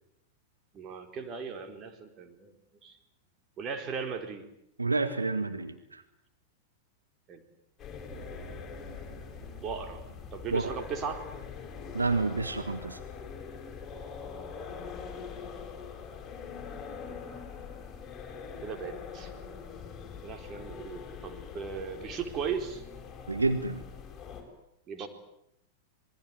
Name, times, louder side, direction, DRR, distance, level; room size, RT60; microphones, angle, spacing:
voice 1, 0.7-2.5 2.8-3.0 3.6-4.5 7.3-7.4 9.6-10.0 10.3-11.2 13.9-14.0 14.8-14.9 17.0-17.4 18.6-19.3 20.1-22.8 24.9-25.1, right 6 dB, 30° right, 6 dB, 4.3 m, -37 dB
voice 2, 4.8-6.0 10.5-10.7 11.9-13.0 23.3-23.8, right 3 dB, 80° right, 8 dB, 1.9 m, -29 dB
sound 1, 7.8-24.4, left 6 dB, 20° left, 7.5 m, -43 dB
sound 2, 8.1-15.6, right 5 dB, 60° right, 6.9 m, -54 dB
27.0 x 21.5 x 9.8 m, 0.77 s
figure-of-eight pair, 95°, 0 cm